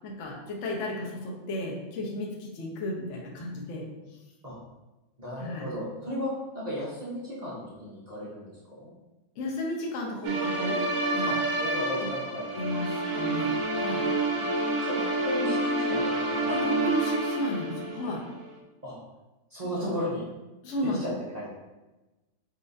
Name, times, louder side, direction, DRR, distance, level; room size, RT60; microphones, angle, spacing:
voice 1, 0.0-3.8 5.4-5.7 9.4-10.8 11.1-11.3 12.0-12.1 12.5-14.0 16.5-18.2 19.8-19.9 20.6-21.1, left 1 dB, 55° left, -1 dB, 0.8 m, -33 dB
voice 2, 5.2-8.5 8.7-8.9 11.3-11.4 11.6-12.5 14.4-14.5 14.8-16.4 18.8-19.0 19.5-20.2 21.0-21.5, equal, 65° right, -7 dB, 0.4 m, -35 dB
sound 1, 10.2-18.2, right 2 dB, 85° right, 1.4 m, -28 dB
4.2 x 4.0 x 2.6 m, 1.1 s
omnidirectional pair, 2.0 m